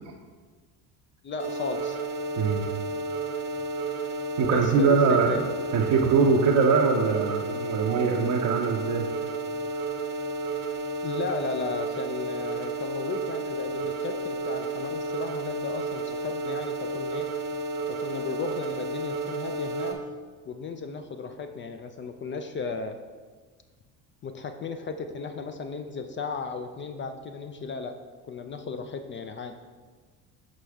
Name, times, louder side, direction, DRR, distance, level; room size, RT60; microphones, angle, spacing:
voice 1, 1.2-2.0 4.5-5.4 11.0-17.3 17.9-20.0 20.5-23.0 24.2-28.0 28.3-29.6, left 4 dB, 30° left, 7 dB, 0.4 m, -35 dB
sound 1, 1.4-19.9, right 3 dB, 75° right, 1.1 m, -32 dB
voice 2, 2.4-2.7 4.4-5.4 5.7-9.1, right 5 dB, 45° right, 0 dB, 0.6 m, -22 dB
5.9 x 5.0 x 3.5 m, 1.4 s
hypercardioid pair, 65°, 46 cm